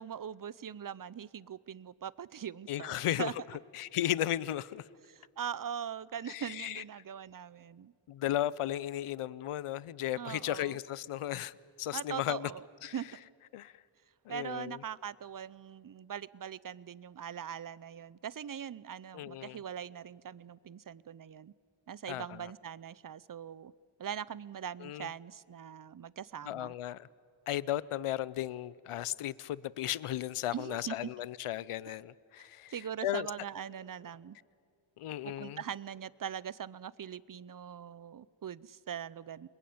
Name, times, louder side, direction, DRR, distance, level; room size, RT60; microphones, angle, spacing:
voice 1, 0.0-3.3 5.1-7.9 10.2-10.8 11.9-12.6 12.9-13.1 14.3-21.5 21.9-23.7 24.0-26.7 30.5-31.1 31.9-32.0 32.7-34.4 35.2-39.5, right 8 dB, 40° right, 0.7 m, -41 dB
voice 2, 2.7-3.3 3.7-4.8 6.3-6.8 8.1-12.5 12.8-12.9 13.5-13.7 14.3-14.8 19.1-19.6 22.1-22.4 24.8-25.1 26.5-27.1 27.5-32.7 33.0-33.3 35.0-35.6, left 12 dB, 90° left, 0.7 m, -35 dB
28.0 x 21.0 x 8.7 m
cardioid pair, 75°, 49 cm